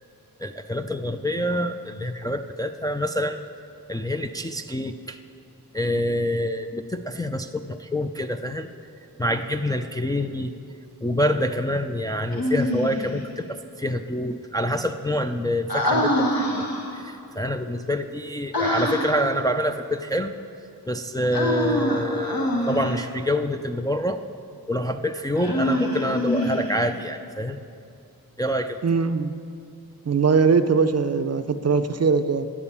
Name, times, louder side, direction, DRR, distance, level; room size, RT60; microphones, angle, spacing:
voice 1, 0.4-3.4 3.9-5.2 5.7-8.7 9.2-10.5 11.0-16.7 16.9-20.4 20.9-24.2 24.7-27.6 28.4-28.8, equal, 10° left, 5 dB, 0.3 m, -26 dB
Human voice, 12.3-13.2 15.7-17.0 18.5-19.3 21.3-23.1 25.4-27.0, left 1 dB, 75° left, 1.4 m, -25 dB
voice 2, 28.8-29.3 30.1-32.5, right 5 dB, 45° right, 10 dB, 0.5 m, -21 dB
9.8 x 7.2 x 8.3 m, 2.4 s
wide cardioid pair, 95°, 36 cm